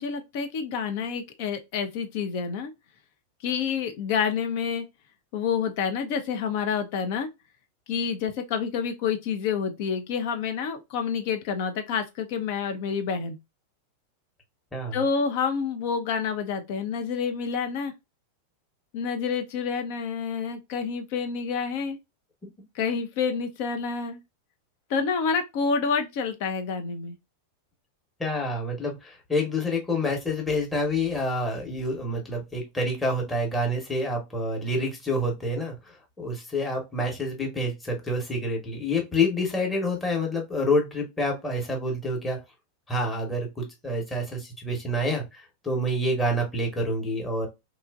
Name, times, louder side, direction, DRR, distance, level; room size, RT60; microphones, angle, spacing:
voice 1, 0.0-2.7 3.4-4.8 5.3-7.3 7.9-13.4 14.9-17.9 18.9-22.0 22.7-24.2 24.9-27.2, left 6 dB, 50° left, 0.5 m, -28 dB
voice 2, 28.2-35.8 36.2-42.4 42.9-47.5, left 1 dB, 15° left, 1.0 m, -27 dB
2.9 x 2.4 x 2.3 m
figure-of-eight pair, 90°, 0 cm